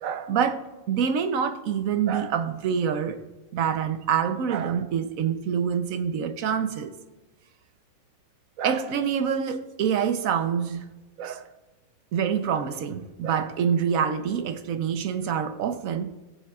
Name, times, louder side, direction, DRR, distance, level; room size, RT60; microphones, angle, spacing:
voice 1, 0.0-3.2 3.5-6.9 8.6-10.9 11.2-11.5 12.1-16.1, right 7 dB, 75° right, 1.1 m, -26 dB
20.5 x 7.3 x 2.4 m
omnidirectional pair, 1.5 m